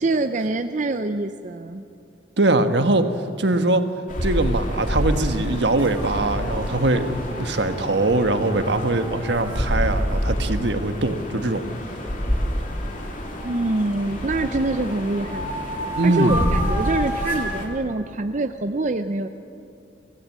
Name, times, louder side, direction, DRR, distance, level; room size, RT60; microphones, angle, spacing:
voice 1, 0.0-1.8 13.4-19.3, right 2 dB, 40° right, 8 dB, 0.6 m, -25 dB
voice 2, 2.4-3.1 3.4-3.9 4.2-11.6 16.0-16.5, right 2 dB, 70° right, 7 dB, 1.4 m, -22 dB
sound 1, 4.1-17.7, equal, 45° left, 3.2 m, -28 dB
sound 2, 5.8-9.6 12.6-13.8 14.3-17.5, right 1 dB, 15° right, 3.7 m, -33 dB
25.0 x 17.5 x 7.5 m, 2.7 s
head